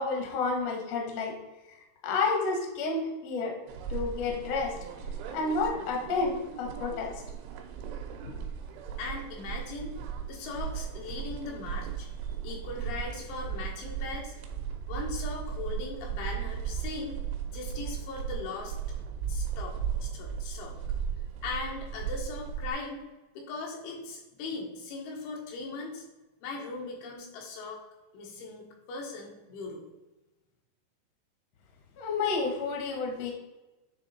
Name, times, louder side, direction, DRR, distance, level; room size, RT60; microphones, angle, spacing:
voice 1, 0.0-1.3 2.0-3.5 3.9-4.7 5.3-7.1 8.3-8.4 32.0-33.3, left 4 dB, 70° left, 1 dB, 1.5 m, -30 dB
sound 1, 3.7-22.7, right 8 dB, 90° right, 3.2 m, -36 dB
voice 2, 9.0-10.0 10.3-14.4 14.9-17.2 17.5-18.7 19.3-20.8 21.4-23.1 23.4-26.0 26.4-27.8 28.1-29.8, left 3 dB, 85° left, -1 dB, 3.9 m, -39 dB
9.8 x 3.4 x 4.2 m, 1.1 s
omnidirectional pair, 5.2 m